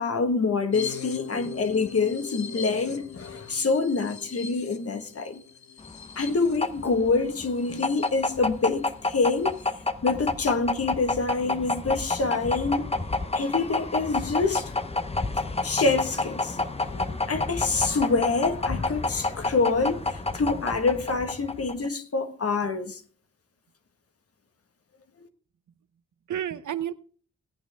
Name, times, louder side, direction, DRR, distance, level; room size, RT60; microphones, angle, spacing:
voice 1, 0.0-5.4 6.2-9.6 10.0-12.9 13.3-14.7 15.6-23.0, left 4 dB, 50° left, 1.4 m, -26 dB
sound 1, 0.7-8.4 8.8-8.9 9.2-9.7, left 7 dB, 70° left, 1.1 m, -41 dB
sound 2, 5.8-21.9, left 3 dB, 20° left, 0.8 m, -29 dB
voice 2, 11.5-11.9 26.3-26.9, right 10 dB, 80° right, 0.7 m, -33 dB
17.0 x 8.9 x 3.4 m
cardioid pair, 70°, 30 cm